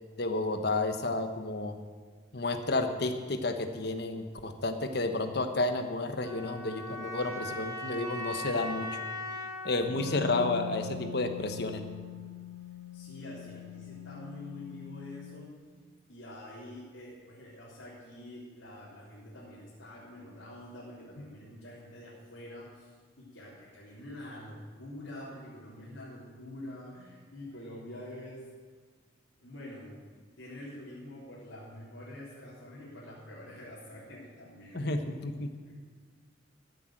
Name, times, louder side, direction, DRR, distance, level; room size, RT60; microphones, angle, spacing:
voice 1, 0.2-1.8 2.3-8.9 9.6-11.8 34.7-35.5, left 2 dB, 60° left, 7 dB, 1.1 m, -31 dB
sound 1, 6.2-11.2, left 1 dB, 20° right, 2.1 m, -40 dB
Wind instrument woodwind instrument, 9.8-15.5, left 7 dB, 75° right, 2.7 m, -42 dB
voice 2, 12.9-15.5 16.1-22.9 23.2-28.5 29.4-30.0 30.4-35.0 35.6-35.7, left 1 dB, 85° left, -8 dB, 3.6 m, -46 dB
14.0 x 8.0 x 7.8 m, 1.5 s
head